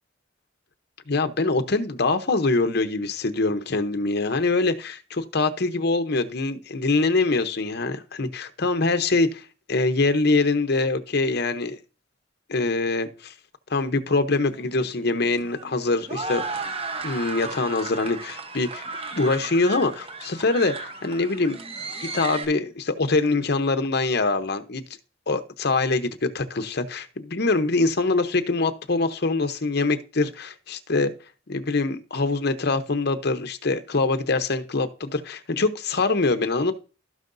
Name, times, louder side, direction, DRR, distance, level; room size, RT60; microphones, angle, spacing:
voice 1, 1.1-11.8 12.5-13.3 13.7-16.4 17.0-18.8 19.2-21.6 22.0-24.8 25.3-31.1 31.5-36.7, left 3 dB, 55° left, 0.8 m, -24 dB
sound 1, 14.5-22.4, right 3 dB, 30° right, 1.0 m, -35 dB
15.5 x 5.5 x 2.6 m
head